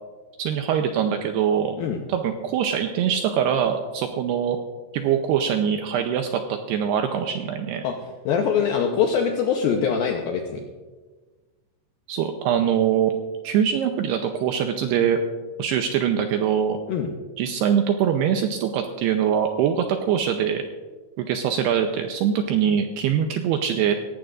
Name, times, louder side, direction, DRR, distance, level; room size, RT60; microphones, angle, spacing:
voice 1, 0.4-1.8 2.1-4.6 4.9-7.8 12.1-13.1 13.4-15.2 15.6-16.8 17.4-20.6 21.2-23.9, right 8 dB, 85° right, 5 dB, 2.4 m, -23 dB
voice 2, 8.3-10.6 16.9-17.1, left 7 dB, 80° left, 2 dB, 2.1 m, -23 dB
18.5 x 15.5 x 2.5 m, 1.3 s
omnidirectional pair, 5.4 m